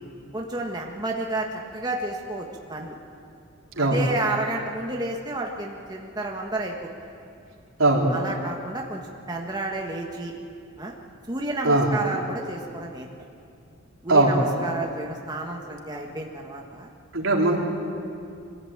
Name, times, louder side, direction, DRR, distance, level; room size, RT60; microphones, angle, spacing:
voice 1, 0.3-3.0 3.8-6.8 8.1-9.0 9.3-10.3 10.8-10.9 11.3-13.1 14.0-16.9, right 2 dB, 20° right, 0 dB, 1.5 m, -31 dB
voice 2, 17.1-17.6, right 2 dB, 85° right, -2 dB, 3.8 m, -19 dB
24.0 x 16.0 x 8.8 m, 2.5 s
head